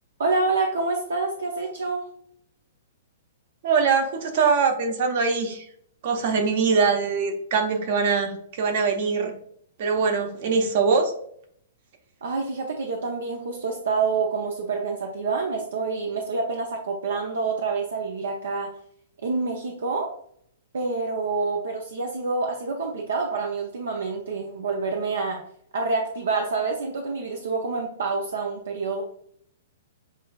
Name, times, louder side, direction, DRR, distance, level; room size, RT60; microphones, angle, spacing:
voice 1, 0.2-2.0 12.2-18.7 19.2-20.1 20.7-25.4 25.7-29.0, right 4 dB, 75° right, 2 dB, 0.7 m, -27 dB
voice 2, 3.6-5.6 6.0-9.3 9.8-11.1, right 5 dB, 55° right, 4 dB, 1.0 m, -22 dB
7.2 x 2.5 x 2.3 m, 0.65 s
hypercardioid pair, 120°, 0 cm